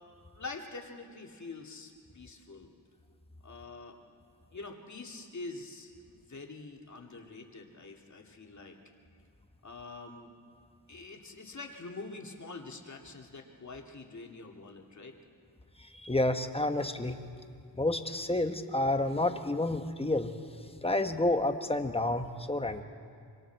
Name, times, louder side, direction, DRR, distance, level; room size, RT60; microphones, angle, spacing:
voice 1, 0.3-2.7 3.4-4.0 4.5-8.8 9.6-10.3 10.9-15.1, left 3 dB, 40° left, 1 dB, 2.1 m, -45 dB
voice 2, 15.8-17.2 17.8-20.3 20.8-22.8, left 2 dB, 15° left, 7 dB, 1.0 m, -29 dB
26.0 x 25.5 x 4.5 m, 2.3 s
wide cardioid pair, 120°, 44 cm